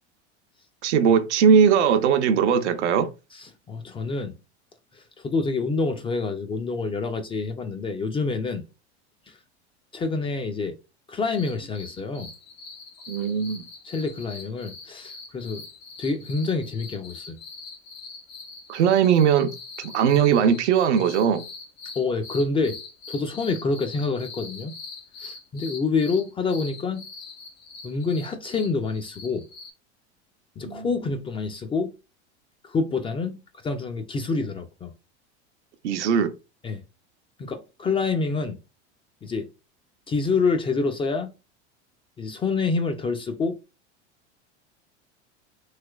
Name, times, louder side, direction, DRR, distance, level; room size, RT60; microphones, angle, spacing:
voice 1, 0.8-3.1 13.1-13.6 18.7-19.5 19.8-21.5 30.6-30.9 35.8-36.3, right 7 dB, 80° right, 0.6 m, -20 dB
voice 2, 3.3-4.4 4.9-8.6 9.3-9.4 9.9-10.7 11.1-12.3 13.8-15.6 16.0-17.4 22.0-22.8 23.1-24.7 25.2-27.1 27.8-29.5 30.6-31.9 32.6-34.9 36.6-36.8 37.4-38.6 39.2-39.5 40.1-41.3 42.2-43.6, left 4 dB, 15° left, 0.3 m, -27 dB
sound 1, 11.3-29.7, left 4 dB, 55° left, 0.9 m, -43 dB
3.2 x 2.9 x 2.3 m
hypercardioid pair, 95°, 34 cm